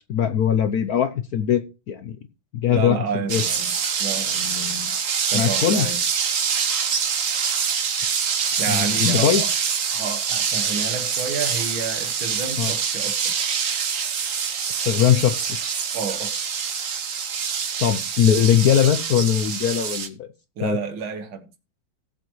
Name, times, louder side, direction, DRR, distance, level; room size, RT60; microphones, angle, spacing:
voice 1, 0.0-2.2 2.5-3.4 5.3-5.9 8.7-9.4 12.6-12.7 14.9-15.6 17.8-20.3 20.6-20.8, left 9 dB, 65° left, 0.9 m, -21 dB
voice 2, 2.7-4.9 5.3-6.0 8.6-9.5 9.9-13.3 15.9-16.3 20.6-21.5, right 5 dB, 80° right, 2.2 m, -30 dB
sound 1, 3.3-20.1, right 6 dB, 50° right, 1.2 m, -25 dB
18.0 x 7.6 x 3.1 m
omnidirectional pair, 2.2 m